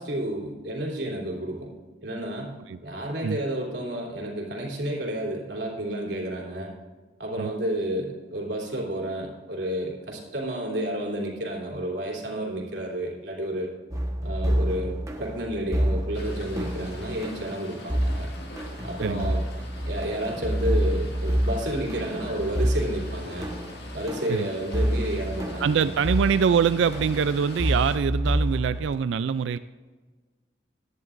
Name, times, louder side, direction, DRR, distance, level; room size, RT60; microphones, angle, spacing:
voice 1, 0.0-1.7 2.0-2.5 2.8-6.7 7.2-13.7 14.2-18.3 18.8-19.4 19.8-23.5 23.9-25.9, right 1 dB, 65° right, -1 dB, 3.2 m, -31 dB
sound 1, 13.9-28.9, equal, 20° right, 1.2 m, -28 dB
sound 2, 16.1-28.0, left 1 dB, 60° left, 2.1 m, -44 dB
voice 2, 19.0-19.3 24.3-24.5 25.6-29.6, right 6 dB, 80° right, 13 dB, 0.3 m, -24 dB
17.0 x 11.0 x 2.6 m, 1.4 s
head